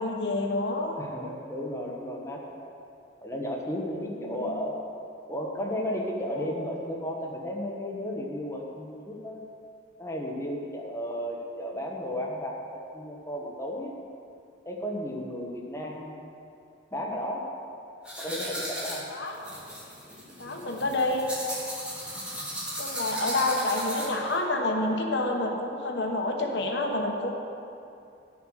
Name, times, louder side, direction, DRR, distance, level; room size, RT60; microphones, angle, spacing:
voice 1, 0.0-1.0 4.2-4.5 19.1-19.4 20.4-21.3 22.8-27.4, left 2 dB, 65° left, 2 dB, 1.1 m, -28 dB
voice 2, 1.0-2.7 3.2-4.8 5.3-9.4 10.0-13.9 14.6-16.2 16.9-17.5 18.2-19.1, equal, 15° left, -2 dB, 1.1 m, -34 dB
sound 1, 18.1-24.3, equal, 5° right, 2.3 m, -36 dB
10.5 x 7.2 x 6.3 m, 2.6 s
head